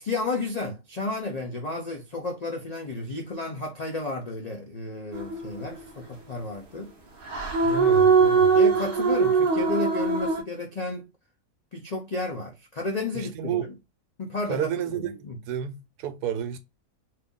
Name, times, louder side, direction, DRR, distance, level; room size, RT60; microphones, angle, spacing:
voice 1, 0.0-6.9 8.0-8.2 8.5-11.1 11.7-13.7 14.2-15.4, left 2 dB, 75° left, 0.3 m, -32 dB
sound 1, 5.1-5.8 7.2-10.4, right 5 dB, 55° right, 0.6 m, -21 dB
voice 2, 7.6-8.6 13.3-13.7 14.5-16.6, right 8 dB, 80° right, 1.1 m, -31 dB
2.8 x 2.6 x 3.6 m
omnidirectional pair, 1.7 m